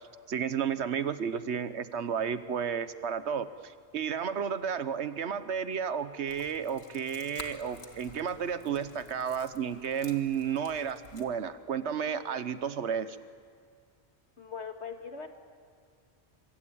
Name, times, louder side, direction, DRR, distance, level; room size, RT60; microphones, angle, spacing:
voice 1, 0.3-13.2, right 7 dB, 80° right, 12 dB, 1.3 m, -32 dB
sound 1, 6.3-11.3, left 3 dB, 70° left, 2.1 m, -50 dB
voice 2, 14.4-15.3, left 6 dB, 90° left, 5 dB, 2.2 m, -40 dB
25.0 x 24.0 x 8.7 m, 2.2 s
omnidirectional pair, 1.1 m